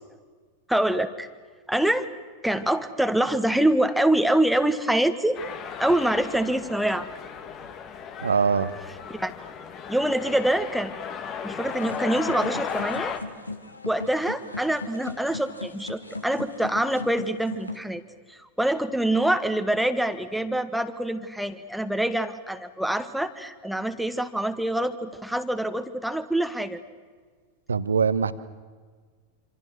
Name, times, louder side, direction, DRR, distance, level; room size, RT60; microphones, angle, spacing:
voice 1, 0.7-1.3 1.7-2.1 2.4-5.4 5.8-7.1 9.1-9.3 9.9-10.9 11.4-13.2 13.8-18.0 18.3-26.8, right 1 dB, ahead, 8 dB, 1.7 m, -25 dB
sound 1, 5.3-13.2, left 7 dB, 35° left, 2.2 m, -35 dB
voice 2, 8.2-8.7 27.7-28.3, right 5 dB, 75° right, 14 dB, 1.2 m, -22 dB
sound 2, 11.7-17.8, left 2 dB, 80° left, 2.1 m, -38 dB
27.0 x 26.5 x 6.4 m, 1.5 s
figure-of-eight pair, 90°, 0 cm